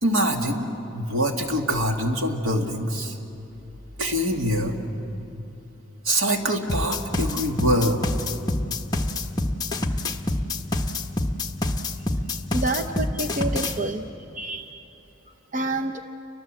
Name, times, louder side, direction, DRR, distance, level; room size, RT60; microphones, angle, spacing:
voice 1, 0.0-3.2 4.0-4.8 6.0-8.1, equal, 85° right, 2 dB, 2.5 m, -24 dB
sound 1, 6.7-13.8, left 2 dB, 20° left, 1.1 m, -26 dB
voice 2, 12.5-14.0 14.3-14.8 15.5-15.9, right 2 dB, 40° right, 5 dB, 0.8 m, -28 dB
30.0 x 24.0 x 7.8 m, 2.9 s
head